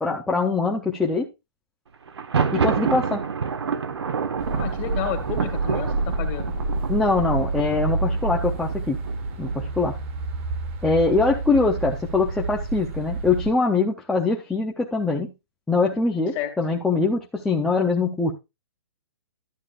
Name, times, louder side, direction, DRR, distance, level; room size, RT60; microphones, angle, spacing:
voice 1, 0.0-1.3 2.5-3.2 6.9-9.0 9.4-9.9 10.8-15.3 15.7-18.3, left 3 dB, 5° left, -3 dB, 0.5 m, -23 dB
Thunder, 2.1-9.8, right 6 dB, 85° right, 1.4 m, -28 dB
sound 1, 4.4-13.5, right 3 dB, 25° right, 1.3 m, -29 dB
voice 2, 4.6-6.5 16.3-16.5, left 10 dB, 25° left, 6 dB, 1.8 m, -31 dB
12.0 x 8.4 x 2.4 m, 0.24 s
hypercardioid pair, 170°, 13 cm